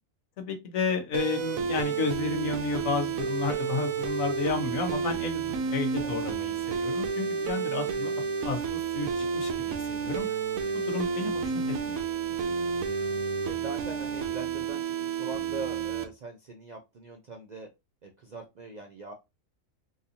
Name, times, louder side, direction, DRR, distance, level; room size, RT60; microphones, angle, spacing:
voice 1, 0.4-10.3 10.7-12.0, left 5 dB, 80° left, 1.3 m, -32 dB
sound 1, 1.1-16.0, right 6 dB, 90° right, 1.1 m, -31 dB
voice 2, 13.5-17.7 18.0-19.1, right 3 dB, 60° right, 0.4 m, -42 dB
3.9 x 2.6 x 2.7 m
omnidirectional pair, 1.4 m